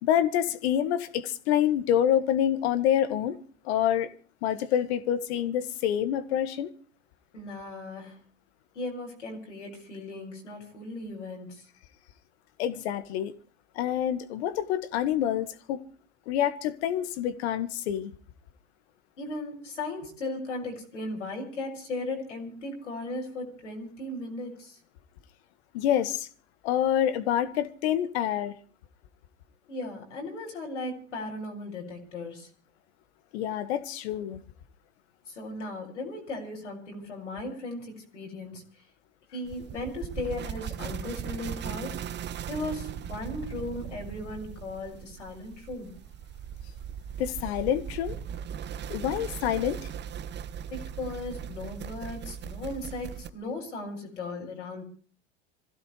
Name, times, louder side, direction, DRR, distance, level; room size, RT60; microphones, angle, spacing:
voice 1, 0.0-3.4 3.7-4.1 4.4-6.7 12.6-13.3 13.8-15.8 16.3-18.1 25.7-26.3 26.6-28.5 33.3-34.4 47.2-48.2 48.9-49.8, left 10 dB, 65° left, 1.9 m, -27 dB
voice 2, 7.3-8.2 8.7-11.7 19.2-24.8 29.7-32.5 35.3-38.6 39.3-42.0 42.5-45.9 50.7-54.8, left 2 dB, 85° left, 6.4 m, -37 dB
sound 1, 39.4-53.3, right 9 dB, 30° right, 1.0 m, -38 dB
26.5 x 16.0 x 3.3 m
hypercardioid pair, 85°, 35 cm